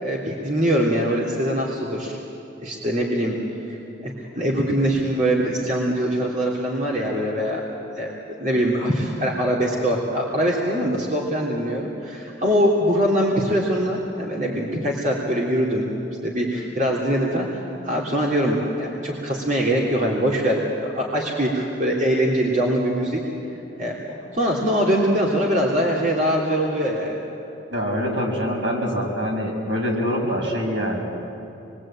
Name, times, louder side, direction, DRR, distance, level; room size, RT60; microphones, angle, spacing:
voice 1, 0.0-2.2 2.6-3.4 3.7-7.7 7.9-8.1 8.4-15.9 16.2-23.2 23.8-27.2, equal, 40° right, -3 dB, 3.3 m, -23 dB
voice 2, 27.7-31.1, equal, 75° right, 0 dB, 6.0 m, -24 dB
29.0 x 22.0 x 8.9 m, 2.8 s
head